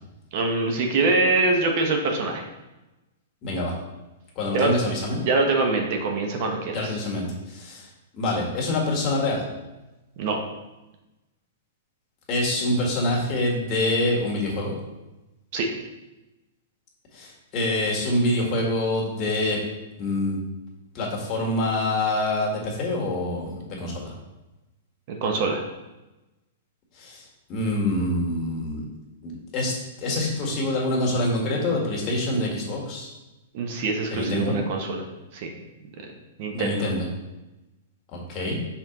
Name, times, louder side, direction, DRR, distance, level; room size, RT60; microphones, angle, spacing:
voice 1, 0.3-2.4 4.5-4.8 5.2-7.0 10.2-10.4 15.5-15.7 25.1-25.6 33.5-35.0 35.3-35.5 36.4-36.9, right 3 dB, 50° right, 3 dB, 1.0 m, -24 dB
voice 2, 3.4-3.7 4.4-5.2 6.7-7.9 8.1-9.4 12.3-14.7 17.1-19.6 20.0-20.4 20.9-24.1 27.0-27.2 27.5-28.8 29.2-33.1 34.1-34.6 36.5-37.0 38.1-38.6, left 1 dB, 30° left, -2 dB, 1.7 m, -26 dB
5.9 x 4.4 x 3.9 m, 1.0 s
hypercardioid pair, 140°, 0 cm